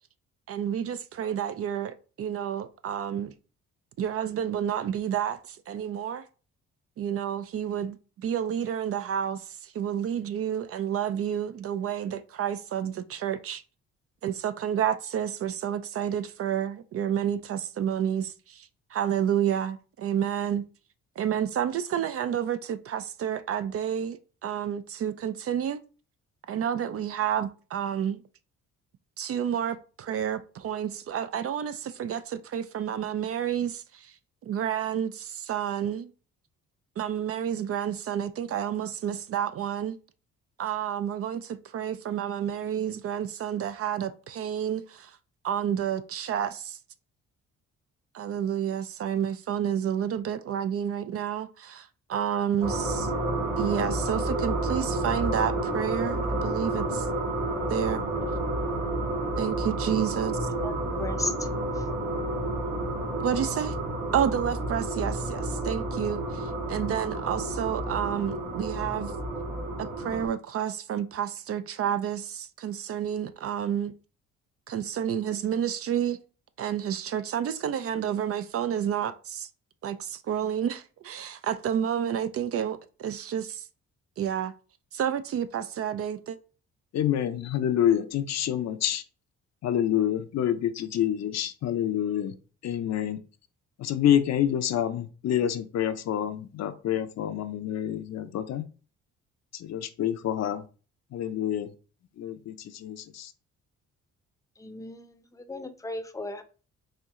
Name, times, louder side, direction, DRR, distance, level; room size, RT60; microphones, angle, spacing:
voice 1, 0.5-3.3 4.0-6.2 7.0-13.6 14.2-20.6 21.2-25.8 26.5-28.2 29.2-34.1 34.4-36.1 37.0-40.0 40.6-45.2 45.4-46.8 48.1-53.1 53.6-57.1 57.7-58.0 59.4-60.5 63.2-63.8 64.1-69.1 69.8-73.9 74.7-76.2 76.6-79.5 79.8-83.6 84.2-84.5 84.9-86.4, right 9 dB, 50° right, 0.4 m, -30 dB
sound 1, 52.6-70.3, right 2 dB, 85° right, 2.1 m, -30 dB
voice 2, 61.0-61.3 104.6-105.0 105.5-106.4, left 2 dB, 10° left, 0.6 m, -34 dB
voice 3, 86.9-89.0 89.6-92.3 92.6-93.2 93.8-98.6 99.5-100.6 101.1-101.7 102.2-103.3, left 10 dB, 60° left, 0.6 m, -27 dB
4.4 x 2.6 x 3.6 m
cardioid pair, 90°, 30 cm